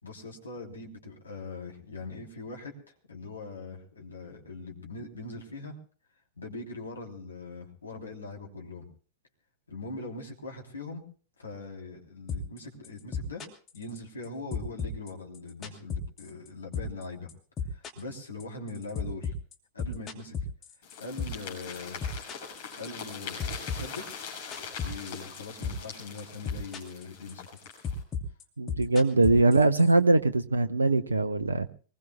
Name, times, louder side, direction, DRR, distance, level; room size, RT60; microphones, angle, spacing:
voice 1, 0.0-2.7 3.1-5.8 6.4-8.9 9.7-11.0 11.4-13.4 13.7-17.3 17.7-19.3 19.7-20.3 21.0-22.0 22.8-24.3 24.8-27.5, left 3 dB, 75° left, 1 dB, 3.1 m, -41 dB
sound 1, 12.3-12.6 12.8-14.3 14.5-16.5 16.7-17.0 17.3-21.5 21.7-23.1 23.4-25.4 25.6-25.9 26.2-27.0 27.3-29.9, left 7 dB, 25° left, 2.7 m, -34 dB
sound 2, 20.8-28.0, left 6 dB, 50° left, 6.7 m, -42 dB
voice 2, 28.6-31.7, right 2 dB, 80° right, 12 dB, 0.6 m, -22 dB
24.5 x 20.0 x 2.2 m, 0.40 s
figure-of-eight pair, 90°, 0 cm